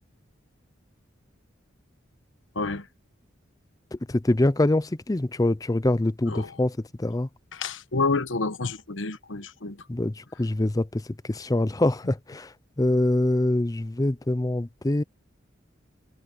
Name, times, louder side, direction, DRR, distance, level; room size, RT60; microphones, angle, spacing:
voice 1, 2.5-2.9 6.3-6.6 7.5-9.8, left 3 dB, 75° left, 1.2 m, -29 dB
voice 2, 4.1-7.3 9.9-11.0 11.3-12.5 12.8-15.0, left 1 dB, 20° left, 0.5 m, -24 dB
head